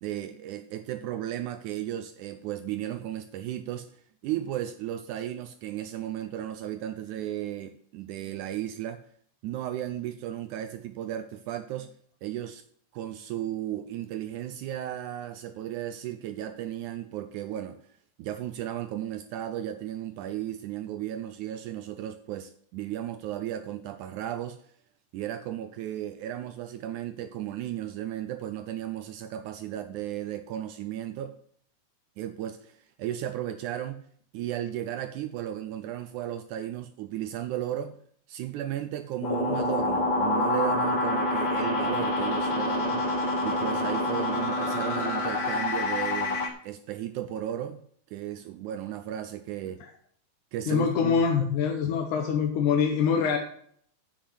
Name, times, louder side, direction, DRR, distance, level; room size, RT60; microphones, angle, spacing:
voice 1, 0.0-9.0 9.4-11.9 12.2-12.6 12.9-24.7 25.1-31.4 32.2-34.1 34.3-38.0 38.3-43.0 43.4-47.8 48.1-49.8 50.5-51.5, right 12 dB, 80° right, 9 dB, 1.8 m, -35 dB
sound 1, 39.2-46.5, left 2 dB, 90° left, 0.9 m, -27 dB
voice 2, 50.7-53.4, left 6 dB, 70° left, 3 dB, 2.2 m, -24 dB
8.2 x 6.3 x 7.7 m, 0.63 s
omnidirectional pair, 4.0 m